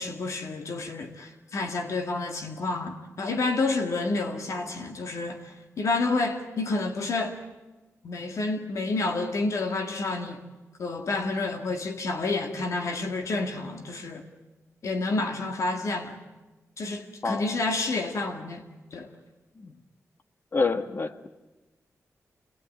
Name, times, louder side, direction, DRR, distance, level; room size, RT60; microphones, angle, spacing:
voice 1, 0.0-7.4 8.0-10.4 10.8-14.3 14.8-16.2 16.8-18.6 18.9-19.1, left 3 dB, 65° left, 5 dB, 2.1 m, -29 dB
voice 2, 17.2-17.6 19.6-19.7 20.5-21.3, left 4 dB, 40° left, 9 dB, 1.4 m, -28 dB
26.5 x 20.0 x 9.2 m, 1.1 s
wide cardioid pair, 115°, 6 cm